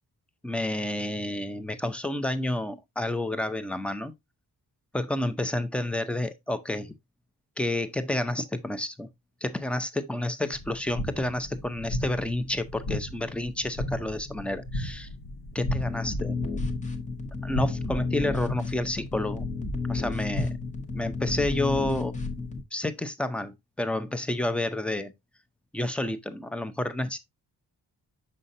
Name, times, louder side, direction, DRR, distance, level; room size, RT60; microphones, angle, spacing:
voice 1, 0.4-4.1 4.9-6.9 7.6-9.1 9.4-15.1 15.5-16.3 17.4-19.5 19.9-20.5 20.9-22.1 22.7-25.1 25.7-27.2, left 1 dB, 5° left, 0.5 m, -30 dB
sound 1, 10.5-22.6, left 1 dB, 70° left, 1.3 m, -36 dB
sound 2, 15.6-22.6, left 3 dB, 20° left, 0.8 m, -32 dB
6.5 x 5.6 x 2.5 m
wide cardioid pair, 160°, 41 cm